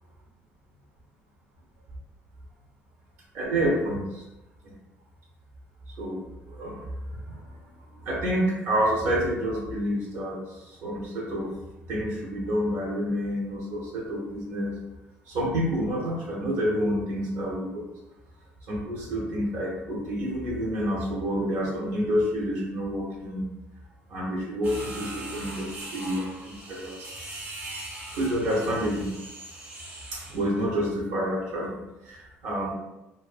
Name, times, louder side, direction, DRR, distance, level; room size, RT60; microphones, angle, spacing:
voice 1, 3.3-4.2 4.6-4.7 6.0-6.2 6.5-7.5 7.9-11.6 11.9-14.8 15.3-17.8 18.7-23.5 24.1-27.0 28.1-29.2 30.1-32.7, equal, 70° right, -3 dB, 0.8 m, -28 dB
sound 1, 24.6-30.5, right 1 dB, 40° right, 0.7 m, -40 dB
2.6 x 2.5 x 2.3 m, 0.98 s
cardioid pair, 140°, 4 cm